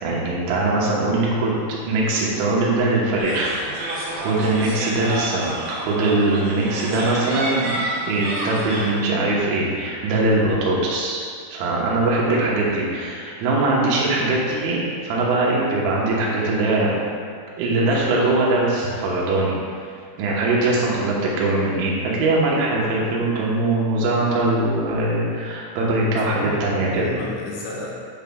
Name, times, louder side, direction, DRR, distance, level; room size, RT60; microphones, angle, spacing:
voice 1, 0.0-7.7 8.1-11.2 11.5-16.9 17.6-19.6 20.2-27.1, right 2 dB, 85° right, -4 dB, 4.0 m, -21 dB
sound 1, 3.2-8.9, right 1 dB, 70° right, 4.3 m, -29 dB
voice 2, 26.0-27.9, left 2 dB, 75° left, -5 dB, 3.2 m, -33 dB
9.8 x 7.1 x 2.3 m, 2.2 s
omnidirectional pair, 6.0 m